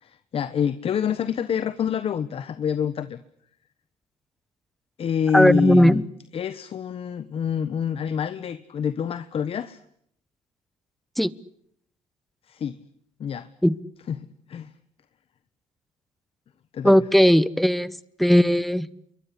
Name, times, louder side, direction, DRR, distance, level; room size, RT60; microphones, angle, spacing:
voice 1, 0.0-3.2 5.0-6.0 6.3-9.8 12.5-12.8 13.2-13.5 14.1-14.7 16.7-17.0, left 8 dB, 50° left, 13 dB, 1.3 m, -27 dB
voice 2, 5.3-6.0 11.2-11.3 13.6-13.7 16.8-17.9 18.2-18.9, equal, ahead, 18 dB, 1.1 m, -17 dB
27.5 x 23.5 x 8.5 m, 0.70 s
cardioid pair, 100°, 12 cm